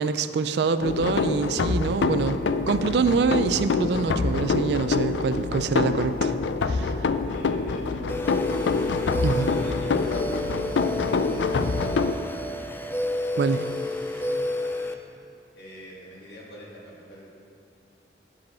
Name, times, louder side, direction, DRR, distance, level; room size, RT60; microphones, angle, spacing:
voice 1, 0.0-2.4 2.7-6.4 6.6-6.9 9.2-9.5 13.4-13.6, right 4 dB, 70° right, 11 dB, 0.4 m, -25 dB
sound 1, 0.8-12.1, left 4 dB, 85° left, 0.4 m, -26 dB
voice 2, 7.3-8.9 9.4-10.7 11.5-12.7 15.5-17.2, equal, 70° left, -5 dB, 2.2 m, -46 dB
sound 2, 8.1-14.9, left 1 dB, 10° left, 0.4 m, -30 dB
10.5 x 5.0 x 6.2 m, 2.5 s
head